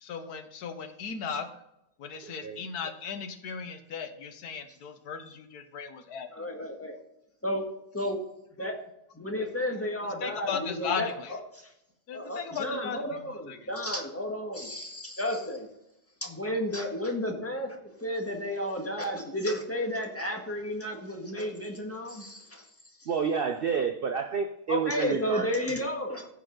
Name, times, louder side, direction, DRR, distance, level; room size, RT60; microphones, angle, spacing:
voice 1, 0.0-1.5 2.0-6.5 10.0-11.4 12.1-13.7, left 6 dB, 75° left, 8 dB, 1.5 m, -37 dB
voice 2, 2.2-2.6 23.1-25.8, right 6 dB, 60° right, 7 dB, 0.6 m, -30 dB
voice 3, 6.3-6.9 7.4-7.7 7.9-8.2 8.5-8.7 9.1-11.7 12.1-15.7 16.2-22.7 24.7-26.3, left 1 dB, 10° left, 1 dB, 1.6 m, -32 dB
15.0 x 5.2 x 3.8 m, 0.84 s
omnidirectional pair, 1.7 m